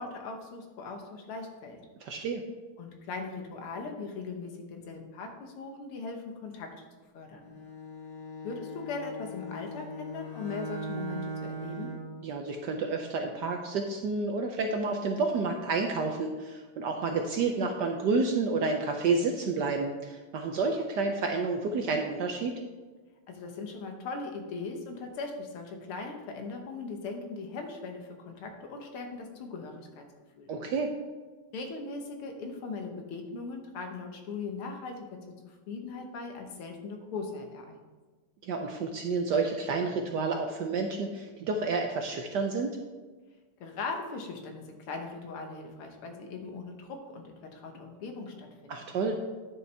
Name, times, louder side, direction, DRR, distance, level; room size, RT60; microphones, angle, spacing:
voice 1, 0.0-1.8 2.8-6.8 7.1-7.5 8.4-11.9 23.3-30.0 30.4-30.5 31.5-35.1 35.4-37.8 43.6-48.8, left 4 dB, 80° left, 4 dB, 2.0 m, -39 dB
voice 2, 2.0-2.4 12.2-22.6 30.5-30.9 38.4-42.8 48.7-49.2, right 4 dB, 70° right, 4 dB, 1.0 m, -30 dB
Bowed string instrument, 7.4-12.2, right 1 dB, 20° left, 1.3 m, -39 dB
9.9 x 6.7 x 3.4 m, 1.4 s
omnidirectional pair, 2.4 m